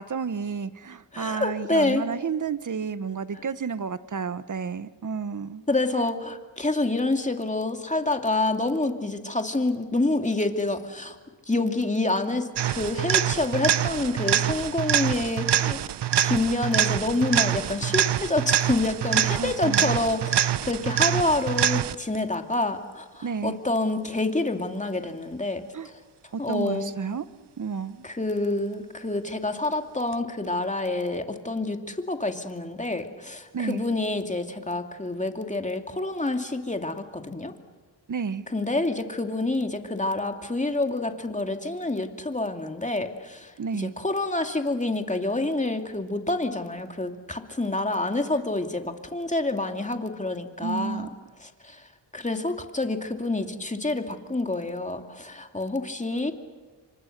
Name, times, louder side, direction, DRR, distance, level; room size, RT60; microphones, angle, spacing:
voice 1, 0.0-5.6 19.4-19.9 23.2-23.6 25.7-25.9 26.3-27.2 27.6-28.1 33.5-33.9 38.1-38.5 43.6-43.9 48.3-48.4 50.6-51.1, right 6 dB, 45° right, 14 dB, 1.1 m, -31 dB
voice 2, 1.1-2.1 5.7-11.2 11.5-15.8 16.2-26.0 26.4-26.9 28.0-37.5 38.5-51.1 51.4-51.9 52.1-56.3, left 2 dB, 15° left, 5 dB, 2.5 m, -27 dB
sound 1, 12.5-22.2 30.1-30.2, right 10 dB, 65° right, 0.9 m, -25 dB
28.5 x 25.0 x 6.7 m, 1.4 s
cardioid pair, 80°, 44 cm